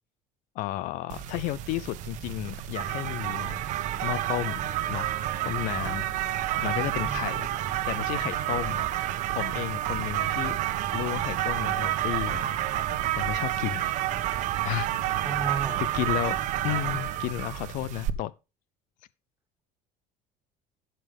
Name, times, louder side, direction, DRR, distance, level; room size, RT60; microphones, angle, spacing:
voice 1, 0.5-3.6 4.0-4.6 4.9-5.1 5.4-6.1 6.6-7.5 7.9-8.9 9.3-10.6 10.9-12.5 13.1-13.8 14.6-15.0 15.5-16.4 16.6-18.3, left 16 dB, 55° left, 0.6 m, -32 dB
sound 1, 1.1-18.1, right 13 dB, 50° right, 1.1 m, -29 dB
voice 2, 6.5-7.4 15.2-15.8, right 4 dB, 15° right, 2.9 m, -35 dB
16.0 x 6.7 x 3.6 m
cardioid pair, 165°, 16 cm